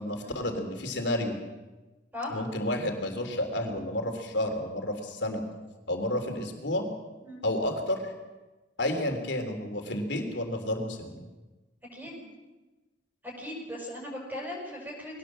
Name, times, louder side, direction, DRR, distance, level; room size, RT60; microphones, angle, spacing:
voice 1, 0.0-1.4 2.3-5.4 5.9-6.9 7.4-8.1 8.8-11.1, left 1 dB, 70° left, 5 dB, 3.5 m, -31 dB
voice 2, 11.9-12.2 13.2-15.2, left 1 dB, 10° right, -3 dB, 6.5 m, -38 dB
22.5 x 18.0 x 7.6 m, 1.2 s
head